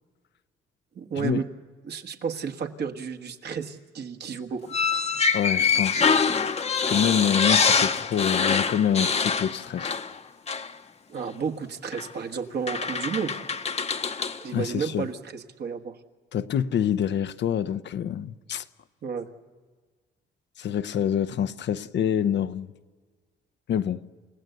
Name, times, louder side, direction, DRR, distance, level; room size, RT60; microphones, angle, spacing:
voice 1, 0.9-1.5 1.8-4.7 11.1-13.4 14.4-16.0 19.0-19.3, right 6 dB, 55° right, 1.6 m, -32 dB
sound 1, 4.7-10.2 10.5-10.7 11.9-12.1 12.7-14.4, left 5 dB, 30° left, 0.9 m, -24 dB
voice 2, 5.3-6.1 6.7-9.9 14.5-15.1 16.3-18.6 20.6-22.7 23.7-24.0, left 9 dB, 65° left, 0.8 m, -26 dB
29.0 x 16.0 x 8.0 m
cardioid pair, 90°, 20 cm